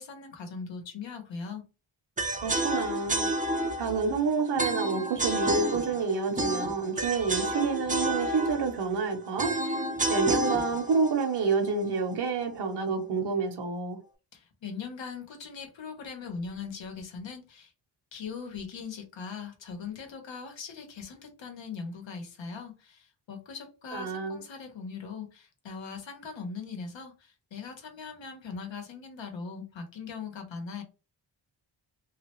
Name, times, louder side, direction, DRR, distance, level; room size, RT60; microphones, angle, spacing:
voice 1, 0.0-1.6 14.3-17.7 18.1-30.8, left 5 dB, 75° left, 1.0 m, -40 dB
sound 1, 2.2-12.2, right 1 dB, 20° right, 0.4 m, -30 dB
voice 2, 2.4-3.3 3.7-9.6 10.1-14.0 23.9-24.4, right 4 dB, 65° right, 0.7 m, -28 dB
3.1 x 2.4 x 3.0 m
wide cardioid pair, 170°, 45 cm